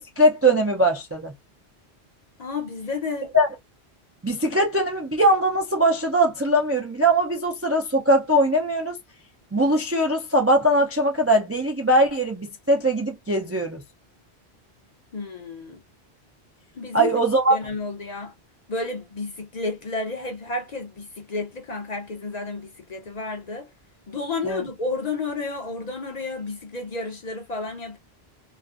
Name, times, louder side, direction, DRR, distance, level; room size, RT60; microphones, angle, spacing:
voice 1, 0.2-1.3 3.3-3.5 4.2-9.0 9.5-13.8 16.9-17.6 24.4-24.6, right 1 dB, 25° right, 0.3 m, -21 dB
voice 2, 2.4-3.3 15.1-15.8 16.8-17.1 17.5-18.3 18.7-23.7 24.1-28.0, left 3 dB, 50° left, 0.6 m, -31 dB
2.5 x 2.4 x 2.3 m
omnidirectional pair, 1.1 m